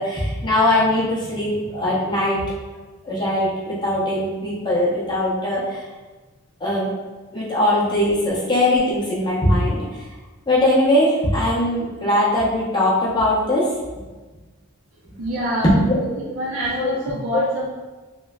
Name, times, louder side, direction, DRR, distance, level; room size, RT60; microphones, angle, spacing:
voice 1, 0.0-2.4 3.0-5.8 6.6-6.9 7.3-9.8 10.5-13.7 15.6-16.1 16.8-17.0 17.3-17.4, left 1 dB, 20° left, -7 dB, 0.7 m, -20 dB
voice 2, 15.2-15.8 16.2-17.7, equal, 85° right, -5 dB, 0.5 m, -26 dB
3.0 x 2.2 x 2.3 m, 1.3 s
head